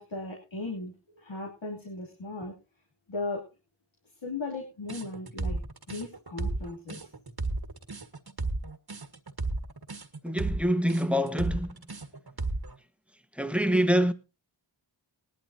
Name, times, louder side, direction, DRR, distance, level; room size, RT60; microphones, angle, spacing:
voice 1, 0.0-2.5 3.1-3.4 4.2-5.6 5.9-7.1, left 2 dB, 75° left, 2.9 m, -37 dB
sound 1, 4.9-12.8, right 2 dB, 55° right, 1.7 m, -33 dB
voice 2, 10.2-11.7 13.3-14.1, equal, 5° right, 1.3 m, -25 dB
19.5 x 12.0 x 2.7 m
wide cardioid pair, 45°, 46 cm